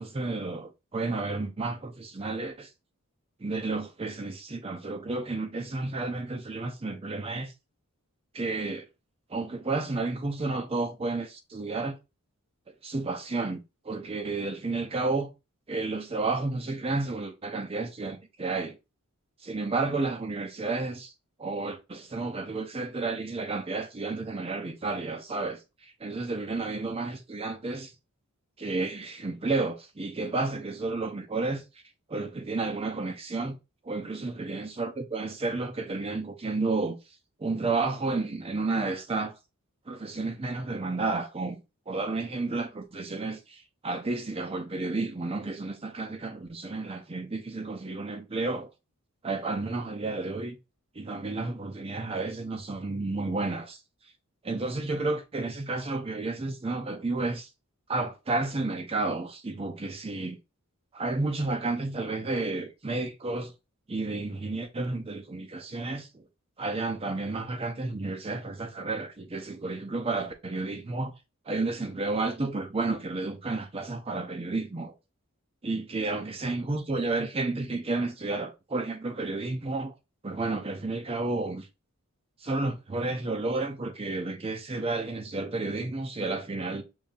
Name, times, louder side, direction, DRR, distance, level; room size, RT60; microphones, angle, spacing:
voice 1, 0.0-2.7 3.4-7.5 8.3-8.9 9.3-12.0 12.8-15.3 15.7-18.8 19.4-21.1 21.4-27.9 28.6-31.6 32.1-33.6 33.8-37.0 37.4-39.4 39.9-41.6 41.9-48.7 49.2-50.6 50.9-53.8 54.4-57.5 57.9-60.4 60.9-63.5 63.9-66.2 66.6-71.1 71.5-74.9 75.6-79.9 80.2-81.7 82.4-86.8, right 3 dB, 25° right, 0.5 m, -31 dB
5.3 x 2.7 x 2.3 m
head